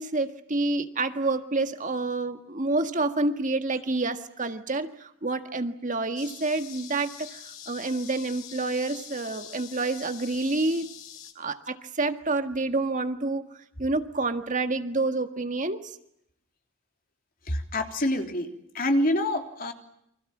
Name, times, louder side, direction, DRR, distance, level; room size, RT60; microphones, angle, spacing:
voice 1, 0.0-10.9 11.4-13.4 13.8-16.0, right 2 dB, 40° right, 8 dB, 1.7 m, -28 dB
sound 1, 6.2-11.3, left 10 dB, 85° left, 4.0 m, -44 dB
voice 2, 17.5-19.7, left 1 dB, 45° left, 5 dB, 3.4 m, -26 dB
29.5 x 25.5 x 7.3 m, 0.75 s
head